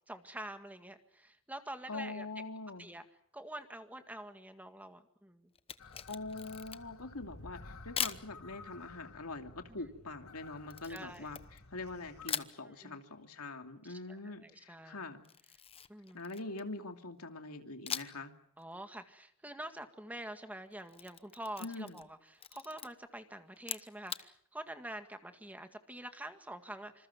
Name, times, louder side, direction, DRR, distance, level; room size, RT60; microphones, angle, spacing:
voice 1, 0.1-2.3 2.8-3.0 3.3-5.5 9.7-9.8 10.8-11.4 12.6-13.0 13.9-15.0 15.9-16.2 18.6-27.1, right 1 dB, 5° right, 7 dB, 1.9 m, -46 dB
voice 2, 1.9-2.9 6.1-15.3 16.1-18.3 21.6-22.0, left 3 dB, 85° left, 5 dB, 2.7 m, -44 dB
Camera, 5.6-7.0 8.0-8.3 10.7-11.9 12.3-12.6 15.2-16.8 17.9-18.3 18.6-18.7 20.7-22.1 22.4-22.9 23.6-24.3, left 8 dB, 25° left, 0.9 m, -41 dB
sound 1, 5.8-12.3, left 3 dB, 70° left, 2.1 m, -53 dB
27.0 x 27.0 x 6.0 m, 0.65 s
head